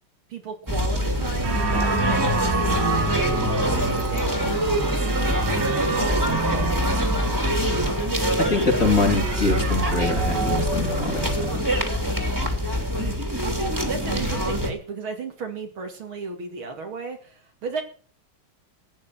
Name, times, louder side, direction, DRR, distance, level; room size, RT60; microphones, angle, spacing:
voice 1, 0.3-7.2 13.4-17.8, right 4 dB, 75° right, 3 dB, 3.2 m, -35 dB
sound 1, 0.7-14.7, equal, 10° right, 2.9 m, -24 dB
sound 2, 1.4-11.6, right 5 dB, 55° right, 2.5 m, -30 dB
voice 2, 8.4-11.6, left 3 dB, 35° left, 0 dB, 3.8 m, -24 dB
15.0 x 9.8 x 6.0 m, 0.43 s
omnidirectional pair, 2.3 m